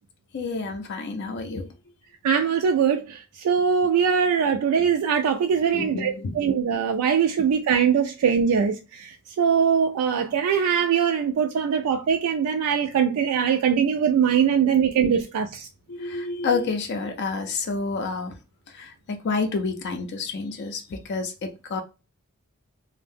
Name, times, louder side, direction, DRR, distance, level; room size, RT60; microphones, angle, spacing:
voice 1, 0.3-1.7 5.7-6.4 7.4-7.5 15.9-18.4 18.7-21.8, left 4 dB, 50° left, 0.4 m, -29 dB
voice 2, 2.2-3.2 3.4-9.1 9.4-15.7, right 7 dB, 75° right, 0.3 m, -22 dB
2.6 x 2.0 x 3.5 m
head